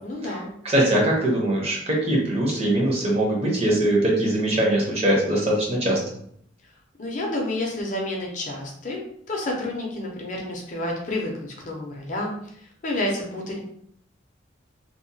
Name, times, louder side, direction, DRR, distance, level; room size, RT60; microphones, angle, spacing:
voice 1, 0.0-0.5 6.6-6.7 7.0-13.6, left 1 dB, 40° left, 0 dB, 0.5 m, -30 dB
voice 2, 0.6-6.0, right 1 dB, 30° right, -2 dB, 0.6 m, -21 dB
2.8 x 2.0 x 2.7 m, 0.68 s
head